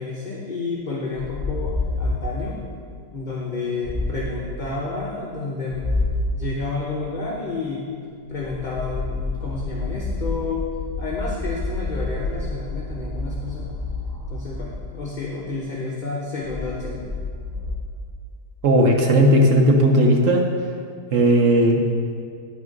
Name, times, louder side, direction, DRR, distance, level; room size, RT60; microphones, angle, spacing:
voice 1, 0.0-2.6 3.1-5.9 6.3-7.9 8.3-10.6 11.0-13.8 14.3-17.1, left 3 dB, 35° left, -4 dB, 0.9 m, -30 dB
sound 1, 1.2-2.4 3.8-4.4 5.7-6.4 8.3-15.1 16.4-17.7, left 2 dB, 15° right, 0.8 m, -28 dB
voice 2, 18.6-20.5 21.1-21.8, right 1 dB, 55° right, 1 dB, 1.0 m, -16 dB
9.7 x 6.1 x 5.2 m, 2.2 s
omnidirectional pair, 1.8 m